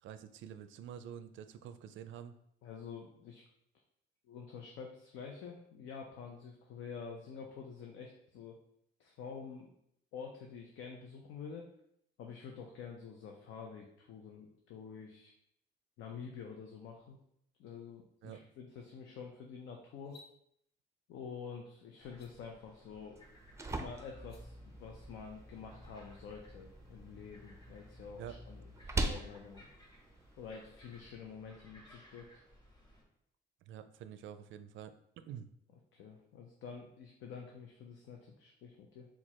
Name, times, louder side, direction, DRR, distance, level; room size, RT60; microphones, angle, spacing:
voice 1, 0.0-2.4 18.2-18.4 28.2-28.4 33.7-35.5, right 9 dB, 75° right, 10 dB, 0.4 m, -48 dB
voice 2, 2.6-3.4 4.3-8.6 9.0-9.7 10.1-11.7 12.2-15.3 16.0-17.2 17.6-20.2 21.1-23.2 23.8-29.7 30.4-32.3 35.9-39.1, left 6 dB, 85° left, 1 dB, 0.6 m, -48 dB
sound 1, 20.0-20.3 22.1-22.3 24.1-24.4, left 3 dB, 55° left, 0.9 m, -57 dB
sound 2, 22.0-33.0, equal, 20° left, 1.5 m, -61 dB
sound 3, 23.2-31.1, right 2 dB, 15° right, 0.4 m, -43 dB
4.6 x 2.3 x 4.2 m, 0.72 s
cardioid pair, 90°, 20 cm